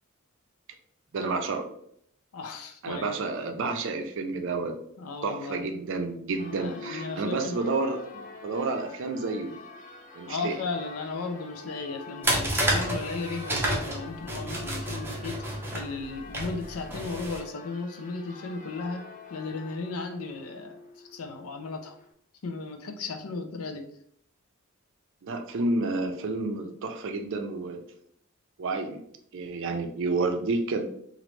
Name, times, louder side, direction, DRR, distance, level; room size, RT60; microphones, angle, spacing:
voice 1, 1.1-1.7 2.8-4.7 5.2-9.5 10.1-10.6 25.2-27.8 28.6-29.0 29.3-30.9, right 3 dB, 60° right, 6 dB, 0.5 m, -30 dB
voice 2, 2.3-3.2 5.0-5.7 6.5-7.6 10.3-19.0 19.3-20.8 21.1-22.0 22.4-23.9, left 3 dB, 85° left, 6 dB, 0.5 m, -35 dB
Church bell, 6.4-22.1, left 3 dB, 35° left, 0.5 m, -46 dB
sound 1, 12.2-17.4, right 1 dB, 10° right, 0.6 m, -30 dB
3.0 x 2.5 x 3.1 m, 0.69 s
head